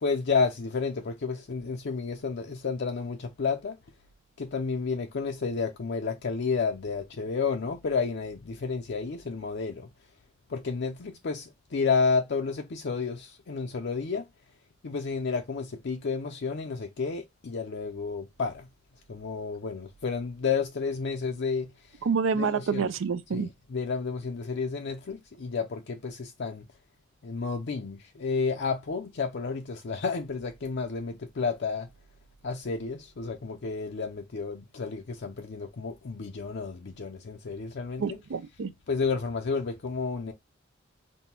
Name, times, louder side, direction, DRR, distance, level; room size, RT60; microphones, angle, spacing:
voice 1, 0.0-3.8 4.4-9.9 10.5-14.3 14.8-18.7 19.1-21.7 22.3-22.9 23.3-26.7 27.2-31.9 32.4-38.2 38.9-40.3, left 5 dB, 60° left, 0.5 m, -31 dB
voice 2, 22.0-23.5 38.0-38.7, right 5 dB, 80° right, 0.5 m, -28 dB
5.4 x 2.2 x 2.8 m
head